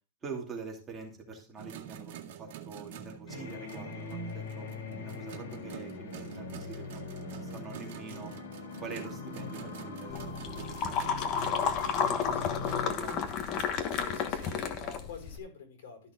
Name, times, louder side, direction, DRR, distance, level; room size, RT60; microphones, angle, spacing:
voice 1, 0.2-4.7 5.0-6.9 7.2-8.3 8.8-11.8 12.1-13.2, right 4 dB, 15° right, 2.7 m, -45 dB
sound 1, 1.6-15.4, right 9 dB, 60° right, 1.8 m, -47 dB
sound 2, 3.3-12.9, left 5 dB, 90° left, 2.5 m, -42 dB
sound 3, 10.1-15.4, left 7 dB, 35° left, 1.2 m, -32 dB
voice 2, 12.3-12.7 13.9-16.1, left 5 dB, 70° left, 4.4 m, -47 dB
13.0 x 6.1 x 3.8 m
supercardioid pair, 160°, 0 cm